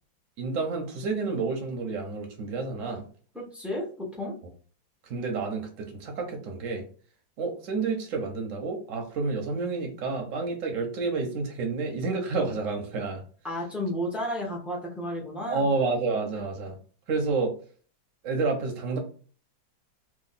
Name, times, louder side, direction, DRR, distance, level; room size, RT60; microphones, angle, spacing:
voice 1, 0.4-3.0 5.1-6.9 7.4-13.2 15.5-16.8 17.1-17.5 18.2-19.0, right 4 dB, 50° right, 3 dB, 1.1 m, -29 dB
voice 2, 3.3-4.3 13.4-15.7, left 1 dB, ahead, -3 dB, 0.5 m, -32 dB
3.1 x 2.6 x 4.1 m, 0.42 s
omnidirectional pair, 2.0 m